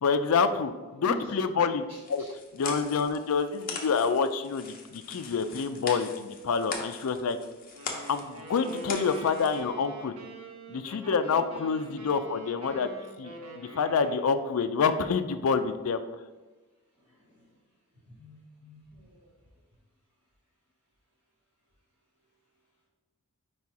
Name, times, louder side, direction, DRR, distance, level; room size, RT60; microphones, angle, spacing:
voice 1, 0.0-2.2 2.5-7.4 8.1-10.1 10.7-12.9 13.2-16.0, left 5 dB, 75° left, 9 dB, 0.4 m, -27 dB
voice 2, 1.9-2.3 11.9-12.1 17.0-17.5 18.0-19.3, left 1 dB, 25° right, -11 dB, 1.8 m, -45 dB
sound 1, 2.0-9.6, left 4 dB, 40° left, 0.9 m, -41 dB
sound 2, 7.7-14.6, right 1 dB, 75° right, 1.0 m, -45 dB
4.7 x 4.2 x 4.7 m, 1.2 s
head